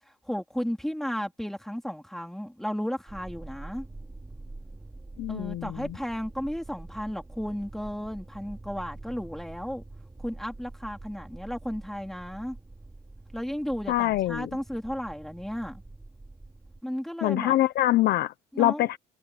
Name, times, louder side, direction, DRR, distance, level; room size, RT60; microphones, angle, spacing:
voice 1, 0.3-3.9 5.3-9.8 10.2-12.6 13.3-15.8 16.8-17.6 18.5-18.9, equal, ahead, 3.6 m, -34 dB
sound 1, 3.1-16.8, right 2 dB, 15° right, 4.5 m, -45 dB
voice 2, 5.2-5.8 13.9-14.5 17.2-19.0, left 15 dB, 70° left, 0.9 m, -24 dB
cardioid pair, 110°, 17 cm